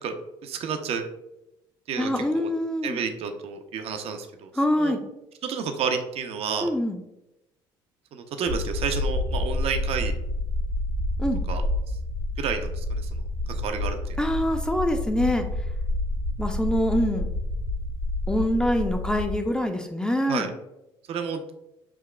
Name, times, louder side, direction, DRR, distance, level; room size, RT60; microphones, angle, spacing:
voice 1, 0.4-1.0 1.9-2.1 2.3-2.5 2.8-4.5 4.8-5.0 5.4-6.7 8.1-10.1 11.5-11.6 12.4-13.2 13.5-14.2 20.3-20.5 21.1-21.4, right 6 dB, 60° right, 6 dB, 0.5 m, -30 dB
voice 2, 2.0-3.0 4.6-5.0 6.6-7.0 11.2-11.4 14.2-15.5 16.4-17.3 18.3-20.5, left 1 dB, 5° left, 4 dB, 0.4 m, -25 dB
sound 1, 8.5-19.4, left 1 dB, 85° right, 1.2 m, -29 dB
5.8 x 2.3 x 2.2 m, 0.89 s
hypercardioid pair, 65°, 12 cm